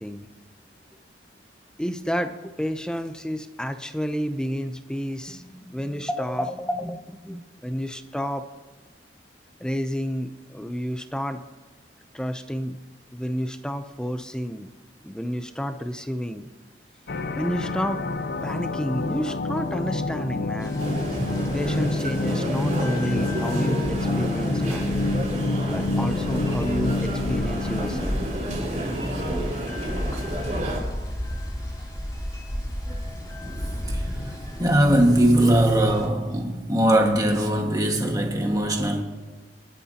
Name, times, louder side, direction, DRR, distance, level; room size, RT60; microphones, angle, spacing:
voice 1, 1.8-8.5 9.6-11.4 12.1-12.8 13.1-14.7 15.0-16.5 17.4-18.0 18.4-20.8 21.5-24.9 25.7-28.2, equal, 5° left, 0.6 m, -30 dB
sound 1, 17.1-28.8, left 2 dB, 60° left, 0.6 m, -28 dB
sound 2, 20.6-36.1, equal, 20° left, 4.4 m, -34 dB
sound 3, 20.8-30.8, right 1 dB, 45° right, 5.6 m, -30 dB
voice 2, 34.6-39.0, right 1 dB, 20° right, 1.8 m, -20 dB
25.0 x 12.5 x 2.9 m
head